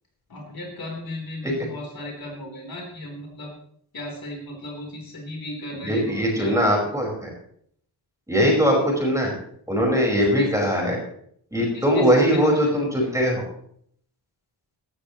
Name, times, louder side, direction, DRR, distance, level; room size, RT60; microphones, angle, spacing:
voice 1, 0.3-3.5 3.9-7.0 8.7-8.8 10.1-10.6 11.7-13.0, left 1 dB, 60° left, 0 dB, 3.8 m, -35 dB
voice 2, 5.9-7.3 8.3-9.3 9.7-11.0 11.5-13.4, equal, 10° right, -1 dB, 4.9 m, -21 dB
17.0 x 13.0 x 3.1 m, 0.65 s
wide cardioid pair, 115°, 41 cm